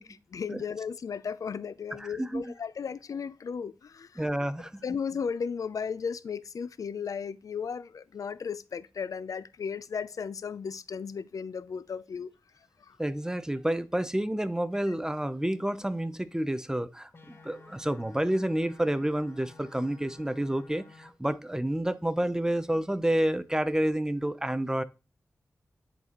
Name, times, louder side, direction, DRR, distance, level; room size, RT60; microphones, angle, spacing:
voice 1, 0.0-4.3 4.8-12.3 12.8-13.0, left 6 dB, 75° left, 0.4 m, -35 dB
voice 2, 1.9-2.5 4.2-4.8 13.0-24.8, right 1 dB, 10° right, 0.6 m, -29 dB
sound 1, 17.1-21.1, left 3 dB, 40° left, 1.5 m, -53 dB
9.9 x 4.1 x 3.0 m
cardioid pair, 50°, 6 cm